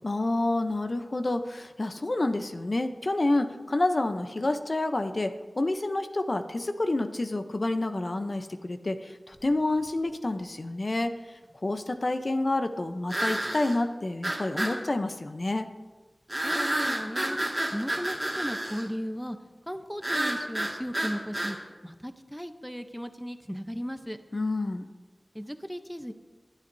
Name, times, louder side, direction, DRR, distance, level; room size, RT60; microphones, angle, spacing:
voice 1, 0.0-11.1 11.6-15.7 24.3-24.9, left 2 dB, 50° left, 7 dB, 0.7 m, -28 dB
sound 1, 9.4-9.5 13.1-13.8 14.2-14.8 16.3-18.9 20.0-21.6, right 1 dB, 20° right, 2.0 m, -30 dB
voice 2, 16.4-19.4 19.7-24.2 25.3-26.1, equal, ahead, 8 dB, 0.8 m, -36 dB
21.0 x 11.5 x 2.7 m, 1.3 s
wide cardioid pair, 75°, 0 cm